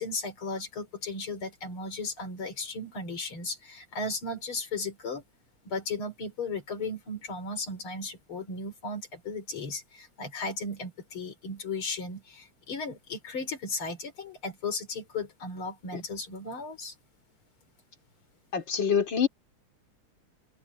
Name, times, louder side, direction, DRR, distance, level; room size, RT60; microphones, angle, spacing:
voice 1, 0.0-5.2 5.6-16.9, left 3 dB, 90° left, 4.5 m, -35 dB
voice 2, 18.5-19.3, left 7 dB, 65° left, 3.4 m, -25 dB
omnidirectional pair, 2.3 m